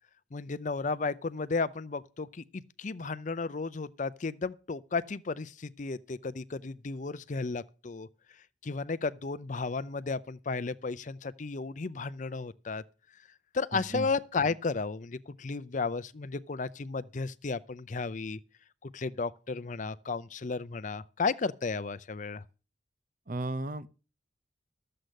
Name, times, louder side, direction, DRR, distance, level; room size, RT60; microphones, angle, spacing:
voice 1, 0.3-8.1 8.6-12.8 13.5-18.4 18.9-22.4, left 4 dB, 40° left, 0.5 m, -33 dB
voice 2, 13.7-14.1 23.3-23.9, right 2 dB, 45° right, 0.8 m, -35 dB
13.0 x 7.7 x 6.5 m
head